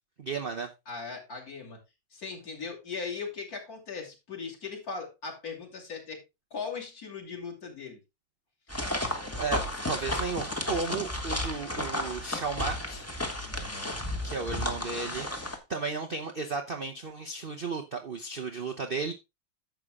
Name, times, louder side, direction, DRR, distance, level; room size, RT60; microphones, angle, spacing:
voice 1, 0.2-0.7 9.4-13.1 13.8-13.9 14.2-19.1, right 4 dB, 55° right, 4 dB, 0.6 m, -34 dB
voice 2, 0.9-1.8 2.1-6.2 6.5-8.0 13.5-14.0, left 5 dB, 45° left, 0 dB, 3.2 m, -39 dB
sound 1, 8.7-15.6, left 1 dB, 10° left, 1.1 m, -33 dB
10.5 x 7.1 x 3.6 m, 0.24 s
omnidirectional pair, 2.2 m